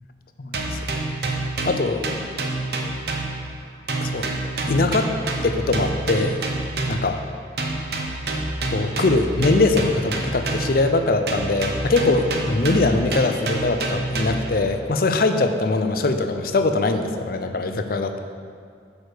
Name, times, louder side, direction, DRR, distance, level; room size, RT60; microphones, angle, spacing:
voice 1, 0.4-0.8 1.7-2.0 4.0-4.2 4.7-5.1 5.4-6.4 6.9-7.2 8.7-18.2, left 3 dB, 55° left, 7 dB, 0.5 m, -22 dB
sound 1, 0.5-3.6 3.9-7.2 7.6-10.9 11.3-14.6, right 2 dB, 60° right, 0.8 m, -27 dB
6.3 x 4.8 x 6.6 m, 2.2 s
head